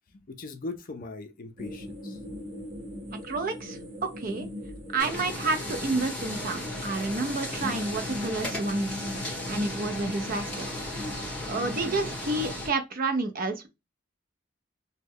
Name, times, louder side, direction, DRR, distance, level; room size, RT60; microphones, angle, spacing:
voice 1, 0.1-2.2, left 3 dB, 45° left, 0.5 m, -40 dB
sound 1, 1.6-12.5, left 1 dB, 25° right, 1.3 m, -39 dB
voice 2, 3.2-4.5 4.9-9.1 9.5-10.7 11.0-11.1 11.5-13.7, right 3 dB, 45° right, 0.5 m, -30 dB
sound 2, 5.0-12.7, left 1 dB, 5° left, 1.3 m, -36 dB
3.0 x 2.1 x 3.5 m
head